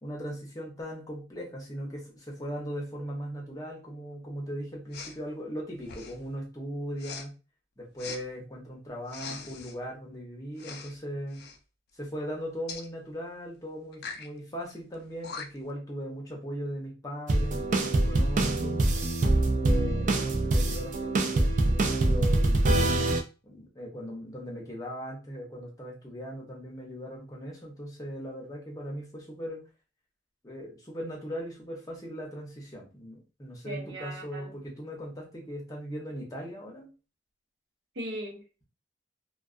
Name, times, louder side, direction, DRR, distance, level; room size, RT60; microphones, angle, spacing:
voice 1, 0.0-7.3 7.8-11.4 11.9-18.8 19.5-22.9 23.4-29.7 30.4-36.9, equal, 20° left, 0.7 m, -38 dB
Respiratory sounds, 4.9-5.2 5.8-6.3 7.0-7.3 8.0-8.2 9.1-9.8 10.6-11.0 11.3-11.6 12.7-12.9 13.9-14.3 14.9-15.0 15.2-15.7, left 5 dB, 55° left, 0.4 m, -41 dB
sound 1, 17.3-23.2, right 2 dB, 40° right, 0.3 m, -24 dB
voice 2, 33.6-34.6 38.0-38.6, right 1 dB, 70° right, 0.7 m, -39 dB
2.3 x 2.2 x 2.4 m
head